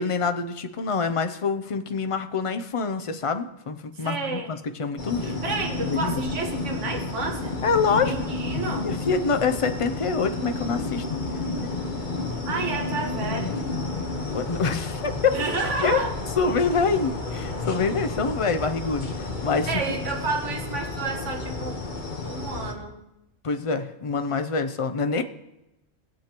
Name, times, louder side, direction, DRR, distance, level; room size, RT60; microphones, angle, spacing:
voice 1, 0.0-5.4 5.8-6.1 7.6-8.1 8.8-11.0 14.3-15.4 15.8-16.0 16.4-19.1 19.4-19.9 23.4-25.2, left 5 dB, 60° left, 8 dB, 0.3 m, -25 dB
voice 2, 4.0-4.6 5.2-7.5 8.0-8.9 12.5-13.6 15.3-16.2 19.7-21.8 22.2-23.0, right 3 dB, 65° right, 2 dB, 1.7 m, -30 dB
sound 1, 5.0-22.7, left 3 dB, 40° left, 1.2 m, -31 dB
20.0 x 7.5 x 2.9 m, 0.94 s
omnidirectional pair, 1.3 m